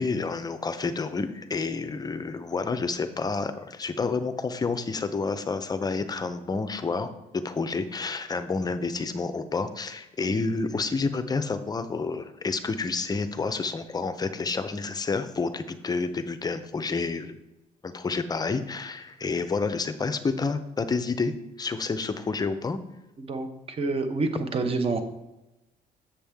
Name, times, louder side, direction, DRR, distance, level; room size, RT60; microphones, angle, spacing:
voice 1, 0.0-17.4 17.8-22.8, left 4 dB, 25° left, 10 dB, 0.6 m, -29 dB
voice 2, 23.8-25.0, right 3 dB, 35° right, 7 dB, 1.0 m, -27 dB
7.2 x 7.1 x 3.5 m, 0.98 s
cardioid pair, 110°, 17 cm